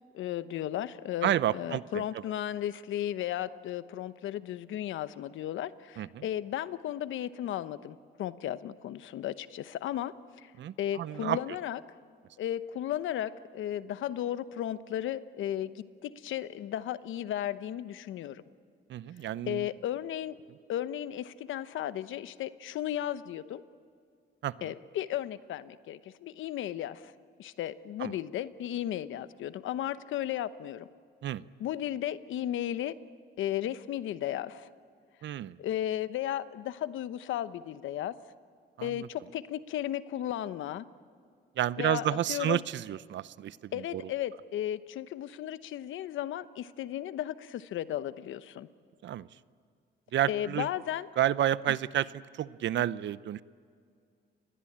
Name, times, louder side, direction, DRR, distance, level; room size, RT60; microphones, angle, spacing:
voice 1, 0.1-10.5 10.8-11.8 12.4-18.4 19.5-20.4 20.7-23.6 24.6-27.1 27.4-30.9 31.6-32.9 33.4-34.7 35.6-38.1 38.8-40.8 41.8-42.6 43.7-48.7 50.3-51.1, left 11 dB, 80° left, 14 dB, 1.0 m, -35 dB
voice 2, 1.2-2.0 6.0-6.2 10.6-11.4 18.9-19.7 24.4-24.7 28.0-28.1 31.2-31.4 35.2-35.6 38.8-39.1 41.6-44.1 49.0-49.3 50.1-50.7 51.2-52.1 52.3-53.4, right 12 dB, 65° right, 17 dB, 0.7 m, -30 dB
29.5 x 21.5 x 8.7 m, 2.2 s
cardioid pair, 90°, 20 cm